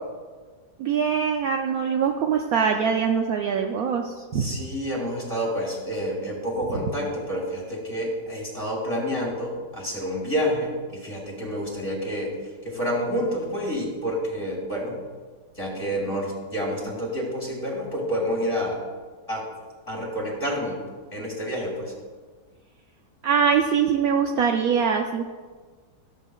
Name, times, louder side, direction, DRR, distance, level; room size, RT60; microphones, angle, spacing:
voice 1, 0.8-4.5 23.2-25.2, right 6 dB, 70° right, 3 dB, 0.9 m, -23 dB
voice 2, 4.3-12.3 12.6-15.0 15.6-18.8 19.3-19.4 19.9-20.8 21.1-21.9, equal, 20° left, -3 dB, 2.4 m, -28 dB
13.5 x 7.4 x 2.4 m, 1.4 s
omnidirectional pair, 1.9 m